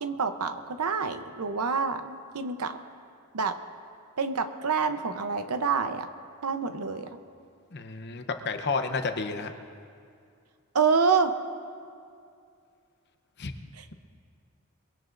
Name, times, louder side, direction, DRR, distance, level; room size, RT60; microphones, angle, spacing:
voice 1, 0.0-2.8 3.3-3.6 4.2-6.1 6.4-7.2 10.7-11.3 13.8-13.9, right 5 dB, 80° right, 9 dB, 0.8 m, -27 dB
voice 2, 7.7-9.5 13.4-13.5, left 4 dB, 50° left, 7 dB, 0.8 m, -31 dB
22.0 x 17.0 x 2.6 m, 2.4 s
head